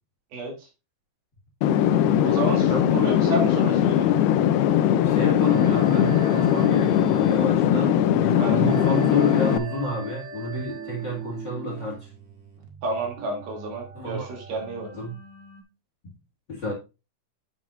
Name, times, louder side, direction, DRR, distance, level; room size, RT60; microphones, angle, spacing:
voice 1, 0.3-0.7 2.2-4.1 8.4-8.6 12.8-14.9, right 2 dB, 70° right, 4.6 m, -31 dB
sound 1, 1.6-9.6, left 10 dB, 80° left, 2.6 m, -20 dB
voice 2, 2.7-3.2 5.0-12.1 13.9-14.3 14.9-15.2 16.0-16.1 16.5-16.7, left 1 dB, 35° left, 2.1 m, -29 dB
sound 2, 5.1-15.6, right 5 dB, 45° right, 1.5 m, -41 dB
9.3 x 7.7 x 2.5 m
omnidirectional pair, 4.6 m